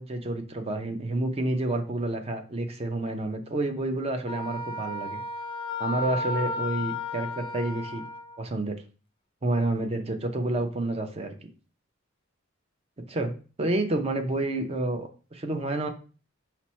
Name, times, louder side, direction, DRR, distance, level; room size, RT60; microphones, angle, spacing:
voice 1, 0.0-5.2 5.8-8.0 8.4-8.8 9.4-11.5 13.1-15.9, right 2 dB, 30° right, 5 dB, 0.6 m, -29 dB
Wind instrument woodwind instrument, 4.3-8.4, left 2 dB, 25° left, 0.3 m, -33 dB
5.8 x 2.1 x 4.1 m, 0.37 s
head